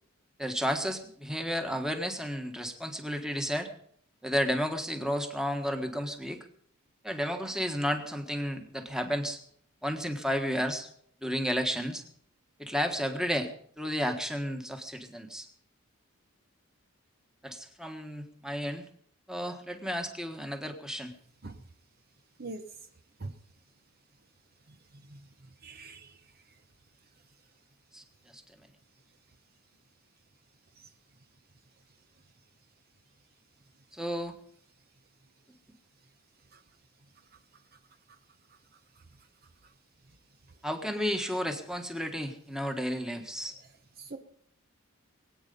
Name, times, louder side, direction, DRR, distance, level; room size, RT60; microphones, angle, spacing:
voice 1, 0.4-3.7 4.2-6.4 7.0-9.4 9.8-10.9 11.2-12.0 12.6-13.5 13.8-15.5 17.4-18.8 19.3-21.1 27.9-28.0 28.3-28.4 33.9-34.3 40.6-43.5, equal, 5° right, 5 dB, 1.5 m, -32 dB
voice 2, 24.7-25.3 25.6-26.2 30.8-30.9 36.5-36.6 44.0-44.2, right 2 dB, 45° right, 8 dB, 0.9 m, -43 dB
22.5 x 9.0 x 5.4 m, 0.62 s
head